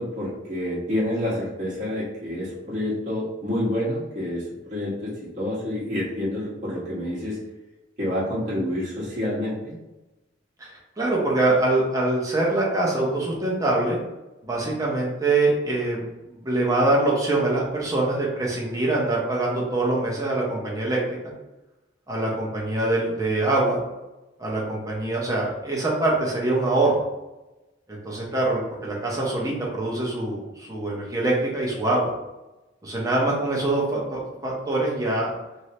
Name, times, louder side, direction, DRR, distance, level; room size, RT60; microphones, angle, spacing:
voice 1, 0.0-7.4 8.0-9.7, left 1 dB, 40° right, -8 dB, 1.1 m, -28 dB
voice 2, 10.6-14.0 14.4-21.2 22.1-23.8 24.4-27.0 27.9-32.1 32.8-35.3, right 2 dB, 20° right, -4 dB, 0.8 m, -24 dB
3.2 x 2.7 x 2.8 m, 1.0 s
head